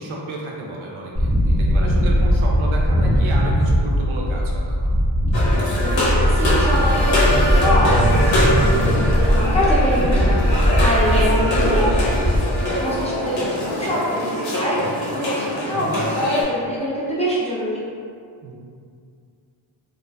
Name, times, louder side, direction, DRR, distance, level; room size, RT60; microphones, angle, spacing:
voice 1, 0.0-4.9 11.7-12.0 13.3-13.5 15.7-16.0 18.4-18.6, right 2 dB, 80° right, -2 dB, 0.6 m, -32 dB
sound 1, 1.2-12.4, equal, 30° right, 0.6 m, -19 dB
sound 2, 5.3-16.4, left 1 dB, 65° left, 0.7 m, -23 dB
voice 2, 5.4-11.9 12.5-17.8, equal, 15° left, -9 dB, 0.4 m, -25 dB
2.4 x 2.4 x 2.2 m, 2.3 s
wide cardioid pair, 120°, 48 cm